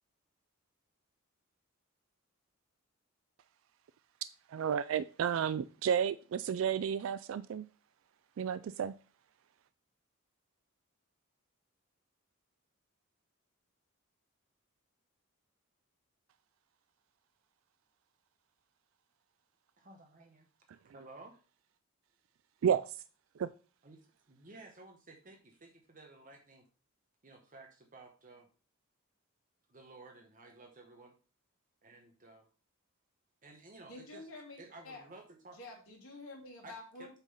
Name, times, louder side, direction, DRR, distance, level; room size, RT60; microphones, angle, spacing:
voice 1, 4.5-7.7 8.4-8.9 22.6-23.0 23.4-23.5, right 8 dB, 70° right, 0.3 m, -32 dB
voice 2, 19.8-20.5 20.8-21.4 23.8-24.0 24.3-26.6 27.2-28.5 29.7-31.1 31.8-32.5 33.4-34.3 34.6-35.6 36.6-36.7 37.0-37.1, right 2 dB, 40° right, 1.0 m, -54 dB
voice 3, 33.9-35.1 35.5-37.1, left 2 dB, 85° left, 2.6 m, -49 dB
8.0 x 3.8 x 5.5 m
head